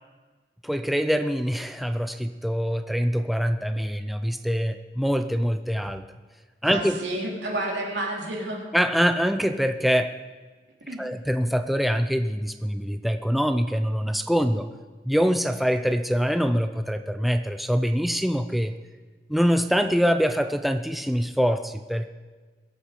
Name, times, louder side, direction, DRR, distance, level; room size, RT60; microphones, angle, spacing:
voice 1, 0.6-6.0 6.6-7.0 8.7-10.1 11.0-14.7 15.1-18.7 19.3-22.1, equal, ahead, 8 dB, 0.5 m, -24 dB
voice 2, 6.6-8.7 10.8-11.0, right 1 dB, 85° right, -2 dB, 3.4 m, -30 dB
21.5 x 8.3 x 5.1 m, 1.4 s
head